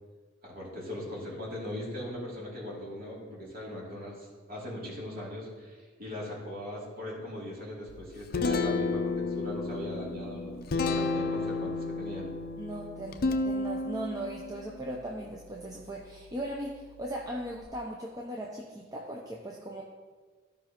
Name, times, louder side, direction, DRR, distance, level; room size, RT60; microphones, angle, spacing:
voice 1, 0.5-12.3, left 1 dB, 45° right, -5 dB, 2.8 m, -39 dB
Guitar, 7.9-17.7, left 3 dB, 45° left, 0.5 m, -33 dB
voice 2, 12.6-19.8, right 1 dB, 20° right, -2 dB, 0.6 m, -38 dB
14.5 x 5.3 x 3.0 m, 1.4 s
head